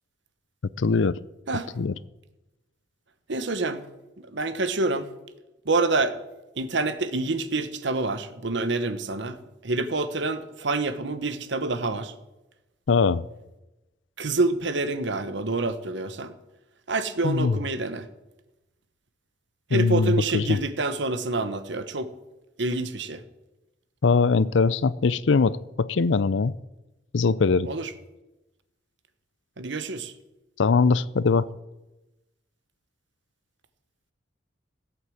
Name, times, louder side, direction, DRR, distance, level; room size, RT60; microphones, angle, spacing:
voice 1, 0.8-1.2 1.8-1.9 12.9-13.2 17.2-17.6 19.7-20.6 24.0-26.6 27.1-27.7 30.6-31.5, left 4 dB, 75° left, 19 dB, 0.5 m, -21 dB
voice 2, 3.3-3.8 4.2-5.1 5.6-6.1 6.6-9.4 9.6-12.1 14.2-16.3 16.9-18.0 19.7-22.1 22.6-23.2 27.7-27.9 29.6-30.1, right 3 dB, 70° right, 11 dB, 1.2 m, -27 dB
16.0 x 8.4 x 7.8 m, 1.0 s
head